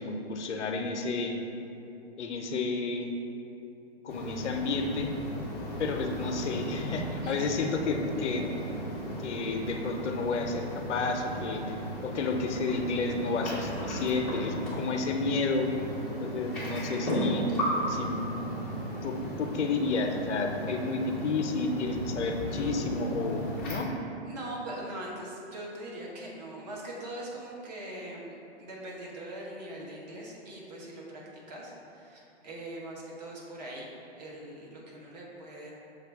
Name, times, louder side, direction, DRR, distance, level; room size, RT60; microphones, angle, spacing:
voice 1, 0.0-1.4 2.2-3.1 4.0-5.1 5.8-8.5 9.2-15.7 16.2-17.4 17.9-18.3 19.0-23.9, left 3 dB, 85° left, 3 dB, 0.6 m, -31 dB
sound 1, 4.1-23.8, equal, 5° left, 0.4 m, -35 dB
voice 2, 22.5-22.9 24.3-31.2 31.5-35.7, right 1 dB, 40° right, -4 dB, 0.9 m, -42 dB
6.5 x 2.3 x 3.4 m, 2.9 s
hypercardioid pair, 150°, 34 cm